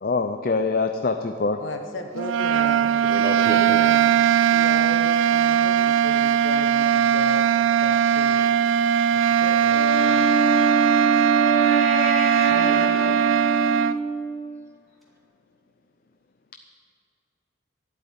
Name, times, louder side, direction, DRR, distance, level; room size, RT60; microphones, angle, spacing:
voice 1, 0.0-1.6, left 3 dB, 50° left, 7 dB, 0.5 m, -24 dB
voice 2, 1.6-3.0 3.5-4.1 4.4-8.4 9.1-10.4, left 2 dB, 85° left, 5 dB, 1.3 m, -36 dB
sound 1, 2.1-14.0, right 9 dB, 90° right, 0.3 m, -20 dB
voice 3, 2.8-3.9 8.3-8.5 12.4-13.2, right 1 dB, 15° right, 4 dB, 1.0 m, -34 dB
Wind instrument woodwind instrument, 9.7-14.4, right 3 dB, ahead, 2.1 m, -25 dB
11.5 x 8.2 x 9.6 m, 2.3 s
head